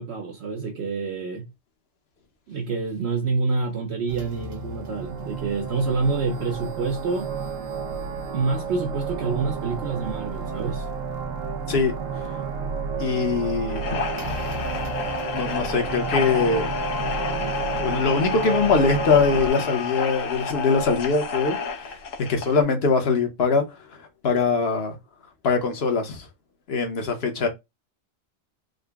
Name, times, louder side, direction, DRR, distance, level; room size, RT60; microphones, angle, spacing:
voice 1, 0.0-1.5 2.5-7.3 8.3-10.9, right 4 dB, 60° right, 0.8 m, -27 dB
sound 1, 4.1-19.5, right 5 dB, 90° right, 1.1 m, -31 dB
voice 2, 13.0-14.0 15.3-16.7 17.8-21.9 22.3-23.7 24.2-24.9 25.4-26.3 26.7-27.5, left 4 dB, 55° left, 1.1 m, -22 dB
sound 2, 13.7-22.6, left 5 dB, 80° left, 1.2 m, -30 dB
3.8 x 2.1 x 3.4 m
omnidirectional pair, 1.3 m